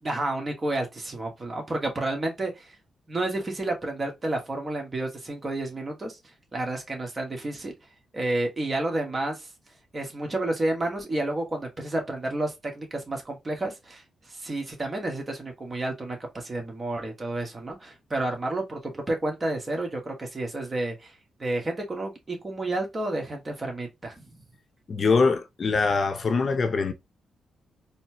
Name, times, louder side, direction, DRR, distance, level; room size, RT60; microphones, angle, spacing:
voice 1, 0.0-2.7 3.1-6.2 6.5-7.7 8.1-9.5 9.9-14.0 14.4-21.1 21.4-24.4, right 2 dB, 35° right, 1.4 m, -30 dB
voice 2, 24.9-26.9, left 4 dB, 50° left, 0.6 m, -23 dB
4.2 x 2.2 x 2.7 m
cardioid pair, 70°, 0 cm